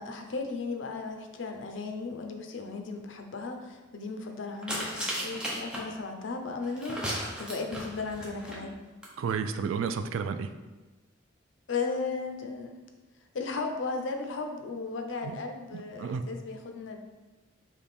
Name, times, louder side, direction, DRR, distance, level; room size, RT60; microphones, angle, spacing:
voice 1, 0.0-8.8 11.7-12.8 13.3-17.0, left 4 dB, 70° left, 4 dB, 0.5 m, -36 dB
sound 1, 4.6-5.8 6.6-8.6 9.0-9.1 9.3-9.4, equal, 5° right, 0.7 m, -35 dB
voice 2, 9.2-10.5 15.2-15.4 15.7-16.3, right 6 dB, 85° right, 9 dB, 0.3 m, -32 dB
3.4 x 3.2 x 4.2 m, 1.2 s
head